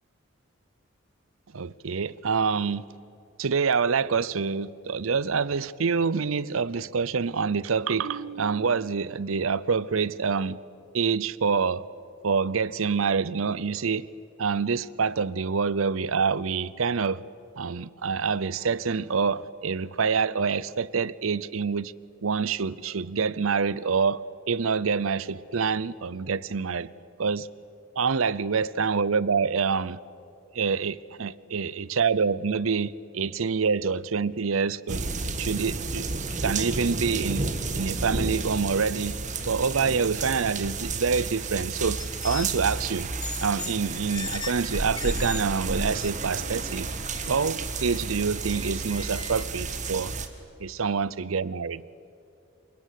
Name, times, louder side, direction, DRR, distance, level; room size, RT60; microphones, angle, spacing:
voice 1, 1.5-2.9 3.4-10.6 10.9-11.8 12.2-14.1 14.4-17.3 17.6-21.9 22.2-26.9 27.2-27.5 28.0-30.0 30.5-35.0 35.4-36.1 36.4-37.5 37.8-39.2 39.5-43.1 43.4-46.9 47.3-50.1 50.6-51.8, right 5 dB, 85° right, 0.7 m, -26 dB
sound 1, 34.9-50.3, right 3 dB, 35° right, 1.7 m, -32 dB
sound 2, 42.0-42.5 43.2-43.8 44.1-45.4 45.9-46.1 46.6-46.7 47.1-49.4, left 6 dB, 20° left, 0.8 m, -39 dB
28.0 x 23.5 x 8.4 m
head